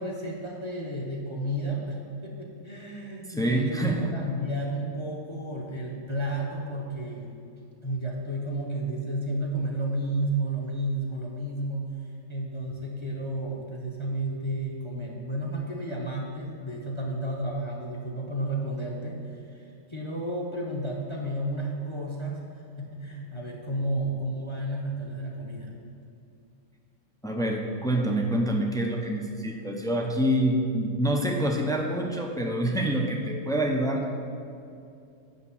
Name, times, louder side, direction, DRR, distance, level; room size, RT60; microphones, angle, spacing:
voice 1, 0.0-7.3 7.8-11.9 12.3-22.4 22.8-25.7, right 1 dB, 25° left, -2 dB, 0.8 m, -32 dB
voice 2, 3.3-4.1 27.2-34.1, right 1 dB, 5° left, 0 dB, 0.3 m, -26 dB
6.5 x 5.9 x 7.2 m, 2.6 s
omnidirectional pair, 1.4 m